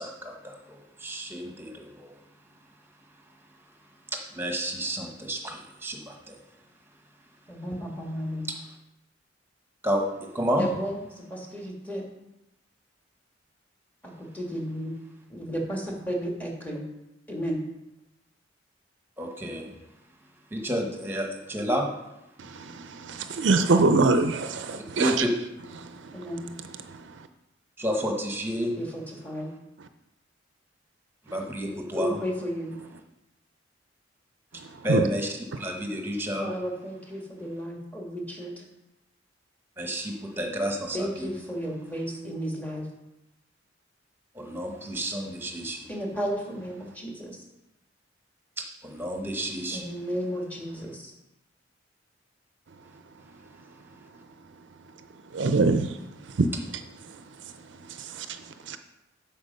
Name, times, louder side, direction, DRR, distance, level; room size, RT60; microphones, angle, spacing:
voice 1, 0.0-2.1 4.1-6.4 9.8-10.1 10.3-10.6 19.2-19.7 20.5-21.9 24.7-25.3 27.8-28.8 31.3-32.2 34.8-35.3 35.5-36.5 39.8-41.3 44.3-45.8 48.8-49.8, equal, 10° right, 2 dB, 1.2 m, -30 dB
voice 2, 7.5-8.5 10.6-12.0 14.0-14.9 15.3-16.8 17.3-17.6 26.1-26.5 28.7-29.5 31.9-32.7 36.4-38.7 40.9-42.9 45.9-47.4 49.7-51.1, equal, 10° left, -1 dB, 1.5 m, -33 dB
voice 3, 22.4-25.3 25.8-26.3 26.9-27.3 34.6-35.1 55.3-58.8, right 3 dB, 65° right, 9 dB, 0.5 m, -26 dB
8.1 x 5.8 x 5.3 m, 0.92 s
head